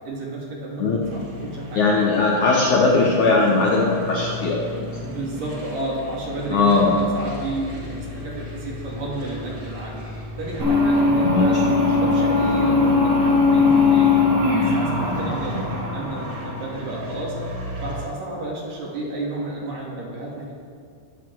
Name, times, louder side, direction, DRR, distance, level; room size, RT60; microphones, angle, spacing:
voice 1, 0.0-1.9 5.0-9.9 10.4-17.3 17.8-20.5, right 2 dB, 50° right, -4 dB, 3.5 m, -32 dB
sound 1, 1.0-18.1, left 1 dB, 30° right, 2.3 m, -35 dB
voice 2, 1.7-4.6 6.5-6.9 11.2-11.5, left 3 dB, 80° left, -3 dB, 1.7 m, -19 dB
sound 2, 10.6-17.0, left 3 dB, 65° right, 5.3 m, -19 dB
20.5 x 8.4 x 4.7 m, 2.3 s
omnidirectional pair, 5.6 m